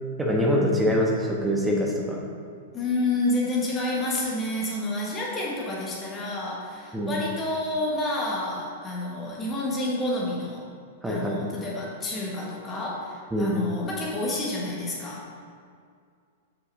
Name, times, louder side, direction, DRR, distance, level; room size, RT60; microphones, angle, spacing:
voice 1, 0.2-2.2 6.9-7.1 11.0-11.4 13.3-13.5, equal, 10° right, -1 dB, 1.3 m, -24 dB
voice 2, 2.7-10.6 11.0-15.3, left 2 dB, 20° left, -4 dB, 1.7 m, -29 dB
6.5 x 6.2 x 4.0 m, 2.2 s
figure-of-eight pair, 100°, 0 cm